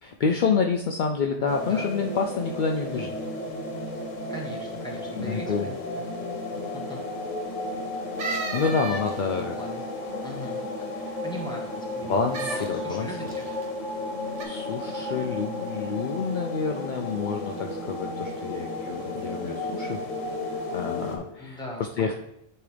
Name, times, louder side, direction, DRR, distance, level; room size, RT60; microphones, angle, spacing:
voice 1, 0.0-3.1 5.2-5.7 8.5-9.6 11.0-11.2 12.0-13.4 14.4-20.0 20.7-21.6 22.0-22.1, left 5 dB, 60° left, 3 dB, 0.5 m, -28 dB
sound 1, 1.5-21.2, left 2 dB, 85° left, 1.5 m, -33 dB
voice 2, 4.3-6.0 6.7-7.0 9.4-9.8 10.2-10.6 11.2-13.4 21.4-22.1, equal, 5° left, -2 dB, 1.2 m, -39 dB
Party horn, 8.2-9.4 12.3-12.7 13.3-13.7 14.4-14.5, right 3 dB, 70° right, 1.3 m, -32 dB
9.7 x 3.6 x 3.3 m, 0.79 s
omnidirectional pair, 1.3 m